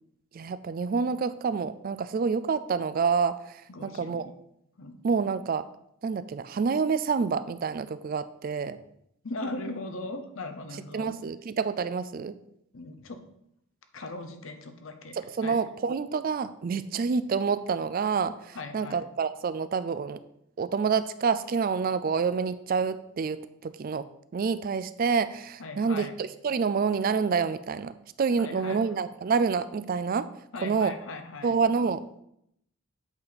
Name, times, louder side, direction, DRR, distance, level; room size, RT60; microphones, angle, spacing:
voice 1, 0.3-4.3 5.0-5.7 6.0-8.8 10.7-12.4 15.1-20.2 20.6-24.1 24.3-27.9 28.2-30.3 30.6-30.9 31.4-32.2, right 5 dB, 40° right, 14 dB, 0.3 m, -28 dB
voice 2, 3.7-4.3 4.8-5.0 9.2-11.2 12.7-13.2 13.9-15.6 18.5-19.0 25.6-26.1 28.4-28.9 30.5-31.6, left 2 dB, 65° left, 7 dB, 0.8 m, -39 dB
8.3 x 4.1 x 5.1 m, 0.76 s
head